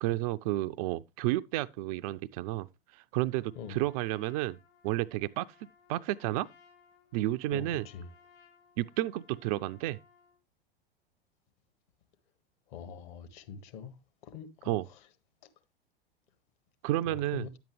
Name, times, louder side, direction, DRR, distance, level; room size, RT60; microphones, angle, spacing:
voice 1, 0.0-2.7 2.9-4.6 4.8-5.5 5.9-6.5 7.1-7.9 8.8-10.0 14.6-14.9 16.8-17.5, right 16 dB, 40° right, 0.4 m, -31 dB
Trumpet, 3.1-10.4, left 6 dB, 70° left, 4.4 m, -63 dB
voice 2, 7.5-8.0 12.7-13.9 14.2-14.8 17.0-17.5, left 7 dB, 55° left, 1.6 m, -43 dB
10.5 x 8.1 x 3.2 m
figure-of-eight pair, 85°, 29 cm